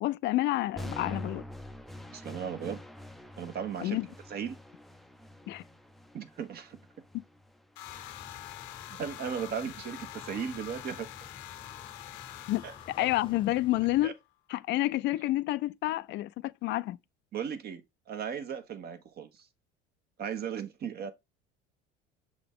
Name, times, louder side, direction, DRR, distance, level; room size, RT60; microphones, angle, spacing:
voice 1, 0.0-1.4 3.8-4.1 5.5-5.6 12.5-14.1 14.5-17.0, left 16 dB, 60° left, 0.4 m, -29 dB
sound 1, 0.8-8.8, left 1 dB, ahead, 0.5 m, -45 dB
voice 2, 2.1-2.8 3.4-4.0 4.3-4.6 6.1-6.8 8.9-11.1 12.6-13.1 14.0-14.1 17.3-17.8 18.1-19.5 20.2-21.1, right 7 dB, 50° right, 1.2 m, -36 dB
sound 2, 7.8-13.9, left 13 dB, 85° left, 1.0 m, -46 dB
sound 3, 7.8-14.1, left 5 dB, 25° left, 0.8 m, -52 dB
6.7 x 3.9 x 3.6 m
supercardioid pair, 95°, 21 cm